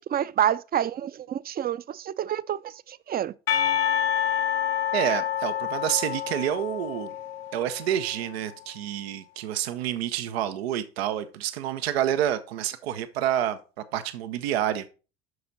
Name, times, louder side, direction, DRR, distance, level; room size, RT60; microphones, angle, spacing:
voice 1, 0.1-3.3, right 10 dB, 30° right, 0.5 m, -28 dB
Percussion, 3.5-8.3, left 10 dB, 90° left, 0.8 m, -28 dB
voice 2, 4.9-7.1 7.5-13.6 13.9-14.9, right 11 dB, 85° right, 0.7 m, -28 dB
7.9 x 6.0 x 3.9 m
hypercardioid pair, 70°, 30 cm